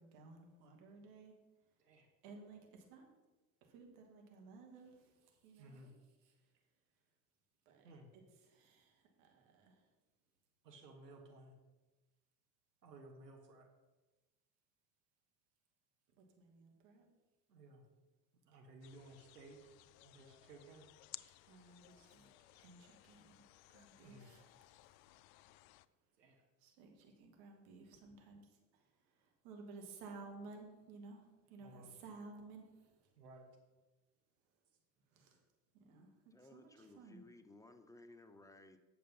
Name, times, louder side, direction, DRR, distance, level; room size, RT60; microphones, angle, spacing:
voice 1, 0.0-1.3 1.8-2.0 2.2-3.1 3.6-5.9 6.2-6.5 7.7-7.9 8.3-9.9 16.1-17.1 21.4-25.7 26.6-33.1 35.1-35.4 35.7-37.2, right 3 dB, 65° right, 2 dB, 2.2 m, -57 dB
voice 2, 5.6-5.9 7.8-8.1 10.6-11.5 12.8-13.7 17.5-17.8 18.4-19.6 20.0-20.9 24.0-24.3 26.2-26.4 31.6-31.9 33.1-33.5, right 2 dB, 85° right, 2 dB, 1.5 m, -57 dB
sound 1, 18.8-25.9, left 18 dB, 65° left, 0.5 m, -59 dB
voice 3, 36.3-38.8, left 2 dB, 5° left, 7 dB, 0.8 m, -59 dB
8.5 x 6.4 x 5.6 m, 1.2 s
hypercardioid pair, 75°, 47 cm